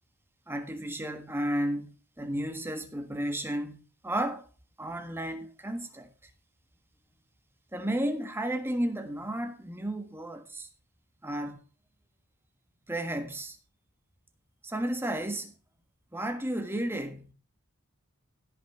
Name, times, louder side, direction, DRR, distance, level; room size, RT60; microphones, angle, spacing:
voice 1, 0.5-4.4 4.8-6.1 7.7-10.7 11.2-11.6 12.9-13.6 14.6-15.5 16.1-17.3, right 1 dB, 10° right, 1.5 m, -33 dB
16.5 x 5.9 x 4.9 m
head